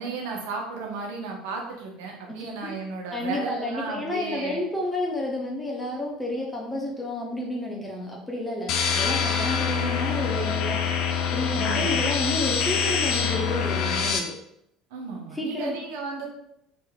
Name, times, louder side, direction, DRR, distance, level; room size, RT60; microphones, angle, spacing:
voice 1, 0.0-4.6 11.5-12.0 14.9-16.2, right 4 dB, 75° right, 0 dB, 1.0 m, -34 dB
voice 2, 2.3-2.7 3.1-14.3 15.3-15.8, left 1 dB, 15° left, -1 dB, 0.9 m, -31 dB
sound 1, 8.7-14.2, left 6 dB, 60° left, 0.5 m, -25 dB
4.6 x 3.4 x 2.3 m, 0.79 s
hypercardioid pair, 70°, 0 cm